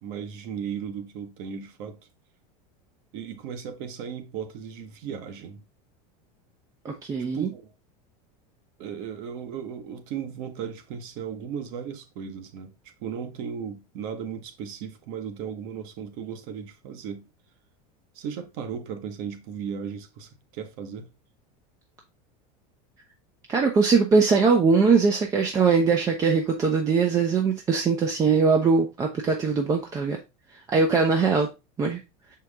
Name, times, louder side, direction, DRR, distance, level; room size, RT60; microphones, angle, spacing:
voice 1, 0.0-2.0 3.1-5.6 7.3-7.7 8.8-12.7 13.0-17.3 18.1-21.1, right 7 dB, 50° right, 1.3 m, -36 dB
voice 2, 6.8-7.5 23.5-30.2 30.7-31.5 31.8-32.0, right 5 dB, 15° right, 0.6 m, -21 dB
6.3 x 4.6 x 3.5 m
supercardioid pair, 165°, 20 cm